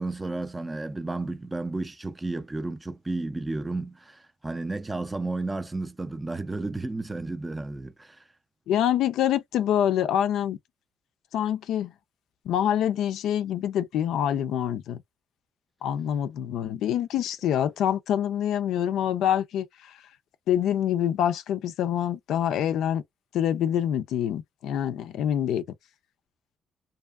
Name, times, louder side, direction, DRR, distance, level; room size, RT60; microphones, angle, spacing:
voice 1, 0.0-8.2, right 2 dB, 20° right, 0.4 m, -32 dB
voice 2, 8.7-10.6 11.3-11.9 12.5-15.0 15.8-20.0 20.5-23.0 23.3-25.6, left 10 dB, 80° left, 0.3 m, -26 dB
2.6 x 2.4 x 2.3 m
cardioid pair, 90°, 0 cm